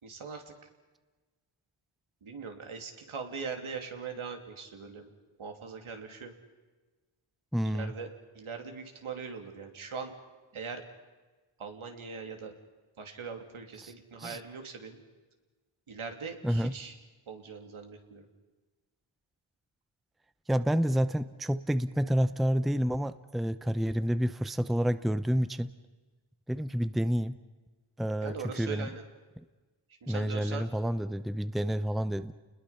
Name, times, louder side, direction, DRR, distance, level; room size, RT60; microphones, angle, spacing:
voice 1, 0.0-0.5 2.2-5.1 5.4-6.3 7.6-8.1 8.3-10.1 10.5-10.8 11.6-12.5 13.0-15.0 15.9-17.0 17.3-18.3 28.2-29.0 30.0-30.6, right 5 dB, 75° right, 4 dB, 2.9 m, -41 dB
voice 2, 7.5-7.9 13.8-13.9 14.2-14.4 16.4-16.7 20.5-25.7 26.5-27.4 28.0-28.9 30.1-32.3, equal, ahead, 12 dB, 0.7 m, -29 dB
30.0 x 20.5 x 5.8 m, 1.3 s
wide cardioid pair, 80°, 49 cm